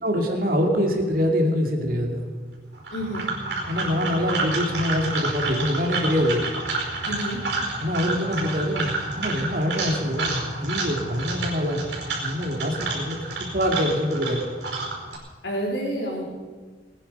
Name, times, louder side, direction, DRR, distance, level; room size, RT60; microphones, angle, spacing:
voice 1, 0.0-2.2 3.7-6.5 7.8-11.8 12.2-14.4, equal, 55° right, 2 dB, 2.5 m, -25 dB
sound 1, 2.8-15.2, right 3 dB, 85° right, 4.8 m, -30 dB
voice 2, 2.9-3.3 7.0-7.4 15.4-16.2, equal, 90° left, -3 dB, 4.3 m, -29 dB
22.0 x 10.0 x 5.5 m, 1.4 s
head